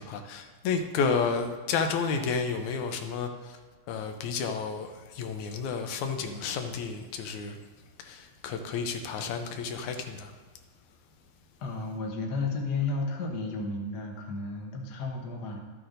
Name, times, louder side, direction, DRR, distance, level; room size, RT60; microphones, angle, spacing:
voice 1, 0.0-3.6 3.9-7.6 8.0-10.3, left 5 dB, 80° left, 6 dB, 2.0 m, -31 dB
voice 2, 11.6-15.6, left 3 dB, 60° left, 0 dB, 1.1 m, -32 dB
12.5 x 8.5 x 2.6 m, 1.3 s
omnidirectional pair, 3.5 m